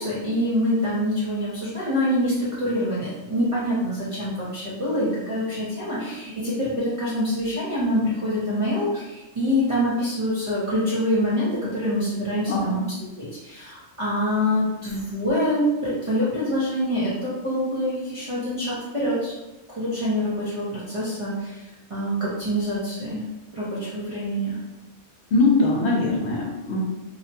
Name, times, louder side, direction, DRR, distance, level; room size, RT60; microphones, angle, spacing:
voice 1, 0.0-12.8 13.2-19.3 19.7-21.6 21.9-23.3 23.5-24.6, equal, 35° right, -9 dB, 0.6 m, -25 dB
voice 2, 25.3-26.8, left 3 dB, 65° left, -2 dB, 0.8 m, -21 dB
2.8 x 2.1 x 2.8 m, 1.0 s
omnidirectional pair, 1.3 m